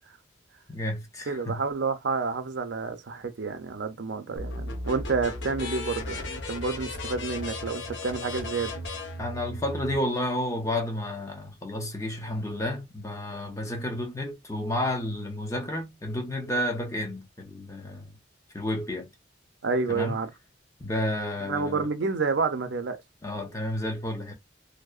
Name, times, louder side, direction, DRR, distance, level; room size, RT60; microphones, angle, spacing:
voice 1, 0.7-1.6 9.2-18.2 18.5-19.1 19.9-20.2 20.8-21.9 23.2-24.3, left 1 dB, 15° left, 0.6 m, -31 dB
voice 2, 1.3-8.7 19.6-20.3 21.5-23.0, right 4 dB, 65° right, 0.5 m, -29 dB
sound 1, 4.4-10.0, left 2 dB, 70° left, 0.6 m, -35 dB
2.7 x 2.0 x 2.3 m
head